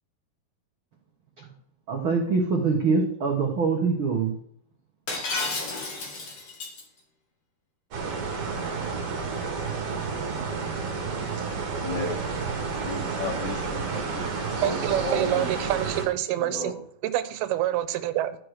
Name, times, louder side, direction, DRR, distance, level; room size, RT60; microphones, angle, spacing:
voice 1, 1.9-4.4, right 4 dB, 65° right, 0 dB, 1.2 m, -24 dB
Shatter, 5.1-6.8, left 3 dB, 45° left, 2.6 m, -31 dB
sound 1, 7.9-16.1, right 5 dB, 45° right, 2.6 m, -30 dB
voice 2, 11.8-12.1 12.8-15.5 16.4-16.7, left 2 dB, 75° left, -4 dB, 5.6 m, -34 dB
voice 3, 14.6-16.7 17.0-18.4, right 13 dB, 85° right, 12 dB, 2.7 m, -27 dB
12.5 x 4.9 x 6.4 m, 0.64 s
omnidirectional pair, 4.4 m